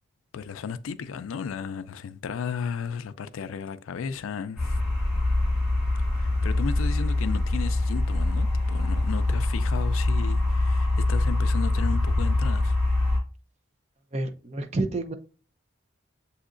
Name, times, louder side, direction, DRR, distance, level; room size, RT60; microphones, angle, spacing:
voice 1, 0.3-4.8 6.1-12.8, left 6 dB, 85° left, 0.4 m, -34 dB
sound 1, 4.6-13.2, left 2 dB, 5° right, 1.8 m, -24 dB
voice 2, 14.1-15.1, right 2 dB, 35° right, 0.5 m, -29 dB
7.2 x 2.8 x 2.5 m
head